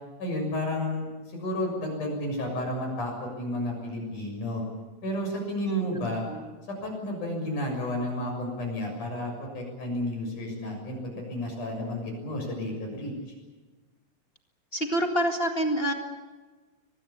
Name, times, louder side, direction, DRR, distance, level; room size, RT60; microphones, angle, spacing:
voice 1, 0.2-1.1 1.3-4.6 5.0-6.2 6.8-13.1, left 1 dB, 55° left, 2 dB, 8.2 m, -31 dB
voice 2, 14.7-15.9, equal, 25° left, 3 dB, 1.4 m, -27 dB
24.0 x 21.0 x 8.6 m, 1.3 s
omnidirectional pair, 4.2 m